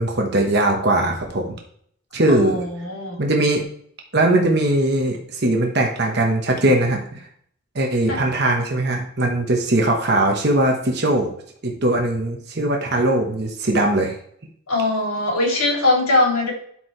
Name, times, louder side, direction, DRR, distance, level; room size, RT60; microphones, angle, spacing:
voice 1, 0.0-1.5 2.1-2.6 3.2-3.6 4.1-7.2 7.7-11.3 11.6-14.2, right 1 dB, 50° right, 1 dB, 1.2 m, -20 dB
voice 2, 2.3-3.2 8.1-8.2 14.7-16.5, left 2 dB, 85° left, -2 dB, 3.1 m, -21 dB
12.0 x 4.6 x 3.3 m, 0.64 s
head